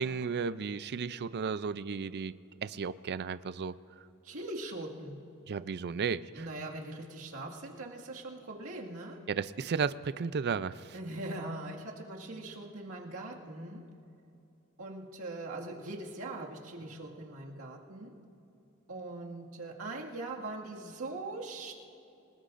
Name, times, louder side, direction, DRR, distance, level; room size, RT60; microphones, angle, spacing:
voice 1, 0.0-2.4 2.6-3.7 5.5-6.2 9.3-10.9, right 5 dB, 50° right, 15 dB, 0.4 m, -33 dB
voice 2, 4.2-5.4 6.3-9.3 10.9-13.9 14.8-18.2 18.9-21.7, right 2 dB, 80° right, -1 dB, 2.0 m, -41 dB
28.5 x 19.5 x 2.6 m, 2.7 s
head